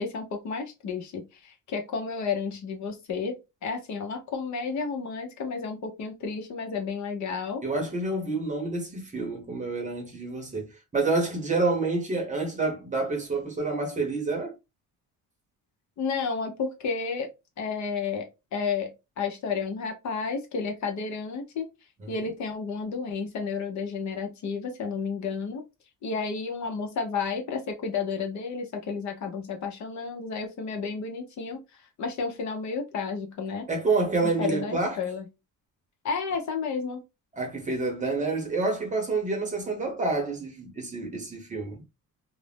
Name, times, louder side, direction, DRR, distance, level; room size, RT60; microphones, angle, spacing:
voice 1, 0.0-3.4 3.6-7.6 16.0-17.3 17.6-18.9 19.2-21.7 22.1-25.6 26.0-31.6 32.0-33.7 34.4-35.3 36.0-37.0, left 5 dB, 55° left, 0.7 m, -31 dB
voice 2, 7.6-10.7 10.9-14.5 22.1-22.2 33.7-35.0 37.3-41.8, right 3 dB, 20° right, 0.7 m, -28 dB
2.5 x 2.0 x 3.3 m
cardioid pair, 165°, 34 cm